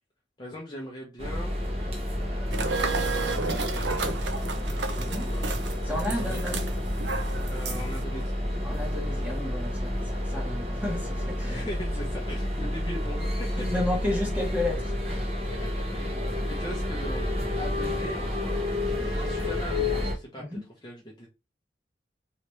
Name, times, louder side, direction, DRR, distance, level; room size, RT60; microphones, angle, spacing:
voice 1, 0.4-1.5 2.2-4.1 5.3-5.5 6.1-6.4 7.5-8.3 11.4-13.5 15.7-17.3 17.6-21.3, equal, 25° left, 0.8 m, -40 dB
sound 1, 1.2-20.1, left 1 dB, 35° right, 1.1 m, -30 dB
sound 2, 2.5-8.0, right 3 dB, 80° right, 0.7 m, -32 dB
voice 2, 5.0-5.3 5.8-6.7 8.6-11.7 13.6-15.3 20.4-20.6, left 1 dB, 10° right, 1.2 m, -32 dB
3.2 x 3.0 x 3.1 m
head